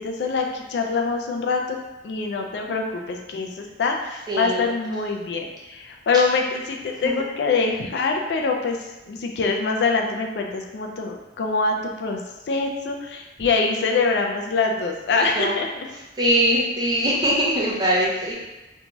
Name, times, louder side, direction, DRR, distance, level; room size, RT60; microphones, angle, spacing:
voice 1, 0.0-1.8 2.0-8.8 9.1-12.2 12.5-15.9, left 4 dB, 70° left, 2 dB, 0.3 m, -24 dB
voice 2, 4.3-4.7 7.0-7.1 15.2-15.5 16.2-18.3, equal, 25° right, -5 dB, 0.6 m, -22 dB
2.6 x 2.2 x 2.9 m, 1.0 s
head